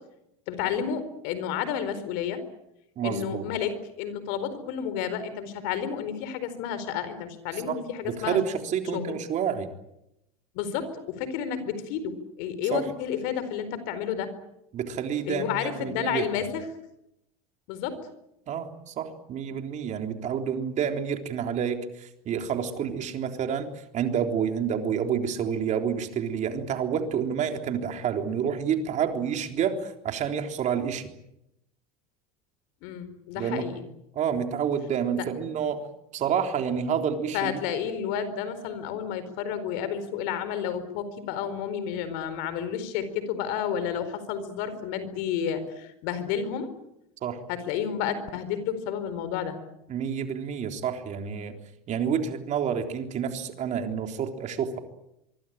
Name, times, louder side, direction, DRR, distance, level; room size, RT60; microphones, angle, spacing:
voice 1, 0.5-2.4 3.0-8.4 8.9-9.1 10.5-14.3 15.3-16.6 17.7-18.0 32.8-33.8 35.1-35.2 37.3-46.7 47.5-49.6, left 8 dB, 65° left, 12 dB, 4.5 m, -31 dB
voice 2, 3.0-3.4 7.7-9.7 12.7-12.9 14.7-16.3 18.5-31.1 33.4-33.7 34.2-35.8 36.1-37.6 47.2-47.4 49.9-51.6 51.9-54.8, right 7 dB, 45° right, 5 dB, 3.6 m, -29 dB
24.5 x 24.0 x 8.9 m, 0.86 s
hypercardioid pair, 95°, 18 cm